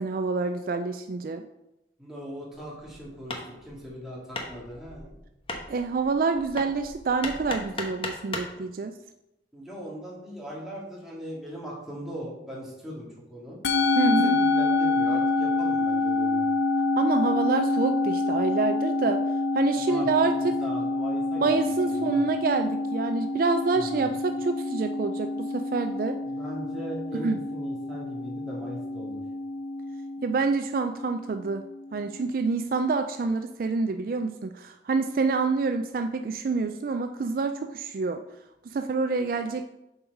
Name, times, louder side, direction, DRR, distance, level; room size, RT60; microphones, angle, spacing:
voice 1, 0.0-1.4 5.7-9.0 14.0-14.4 17.0-19.2 19.5-20.6 21.4-26.2 27.2-27.4 30.2-31.6 31.9-38.2 38.7-39.7, right 4 dB, 50° right, 8 dB, 0.3 m, -27 dB
voice 2, 2.0-5.1 9.5-13.6 14.0-16.5 19.7-22.2 23.7-24.1 26.2-29.2, equal, ahead, -5 dB, 2.1 m, -39 dB
Hammer, 2.5-8.6, left 2 dB, 30° left, 1.0 m, -38 dB
Musical instrument, 13.6-32.1, left 3 dB, 70° left, 0.6 m, -27 dB
7.2 x 4.6 x 5.3 m, 0.90 s
head